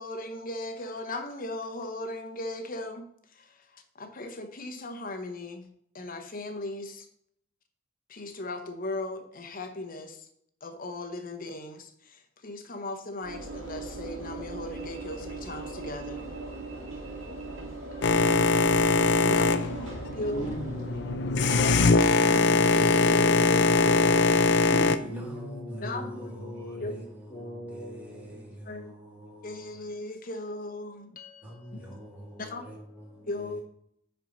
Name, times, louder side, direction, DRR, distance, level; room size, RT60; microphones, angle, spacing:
voice 1, 0.0-3.1 3.3-5.7 5.9-7.1 8.1-10.3 10.6-16.3 17.9-20.6 21.9-24.6 25.8-26.3 26.8-27.1 28.6-28.9 29.4-30.9 31.5-32.8 33.1-33.6, left 2 dB, 45° left, 1.0 m, -38 dB
Train / Engine / Alarm, 13.2-21.5, right 2 dB, 80° right, 2.4 m, -39 dB
Boat Water vehicle, 18.0-25.0, left 3 dB, 60° left, 0.5 m, -22 dB
voice 2, 20.3-24.3 24.7-27.0 27.3-28.5, equal, 30° left, 2.2 m, -40 dB
voice 3, 25.0-29.7 31.4-33.6, equal, 10° right, 2.6 m, -44 dB
10.5 x 4.6 x 4.0 m
head